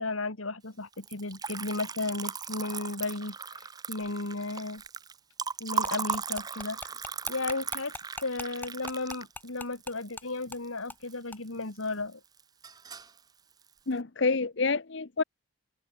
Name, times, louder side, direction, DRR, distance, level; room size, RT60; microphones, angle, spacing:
voice 1, 0.0-4.8 5.6-6.9 7.2-7.9 8.2-12.2, left 2 dB, 90° left, 2.7 m, -34 dB
Liquid, 0.9-11.1 11.5-12.1 12.4-13.2, right 5 dB, 20° right, 0.6 m, -37 dB
sound 1, 5.8-10.2 10.5-10.6 10.9-11.0 11.3-11.4, left 2 dB, 10° left, 1.4 m, -41 dB
voice 2, 13.9-15.2, left 4 dB, 60° left, 0.9 m, -28 dB
head